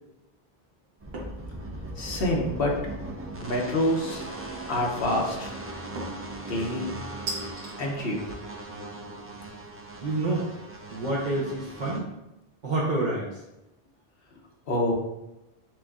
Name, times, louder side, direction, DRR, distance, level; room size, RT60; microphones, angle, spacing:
sound 1, 1.0-12.0, right 2 dB, 20° right, 0.3 m, -39 dB
sound 2, 1.1-1.4 1.9-2.4 4.1-4.6 6.0-6.3 7.3-7.7, right 2 dB, 75° right, 1.2 m, -37 dB
voice 1, 2.0-2.7 3.4-4.2 4.7-5.5 6.5-6.9 7.8-8.4 14.7-14.9, left 1 dB, 65° left, -1 dB, 1.1 m, -27 dB
voice 2, 10.0-10.5 10.9-12.1 12.6-13.4, right 2 dB, 50° right, -6 dB, 0.9 m, -28 dB
7.7 x 2.6 x 2.4 m, 0.94 s
omnidirectional pair, 1.0 m